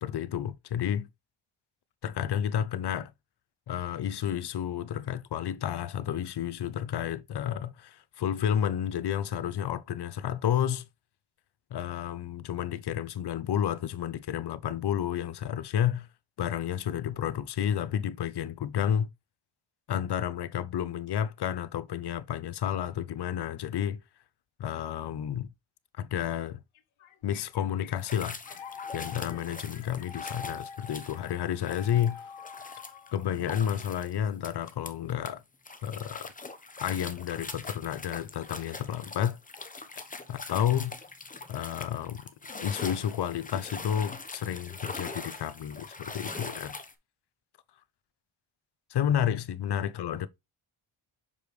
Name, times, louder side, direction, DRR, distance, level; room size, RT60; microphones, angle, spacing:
voice 1, 0.0-1.1 2.0-3.1 3.7-10.9 11.7-16.1 16.4-19.1 19.9-24.0 24.6-25.5 25.9-26.6 27.2-28.4 28.9-32.3 33.1-35.4 35.8-36.3 36.8-39.4 40.3-40.9 41.5-42.2 42.6-46.8 48.9-50.3, left 10 dB, 55° left, 0.7 m, -31 dB
sound 1, 26.8-34.3, left 6 dB, 80° left, 0.9 m, -46 dB
sound 2, 28.0-35.3 35.7-46.9, left 3 dB, 15° left, 0.9 m, -42 dB
6.8 x 5.1 x 3.1 m
wide cardioid pair, 130°, 48 cm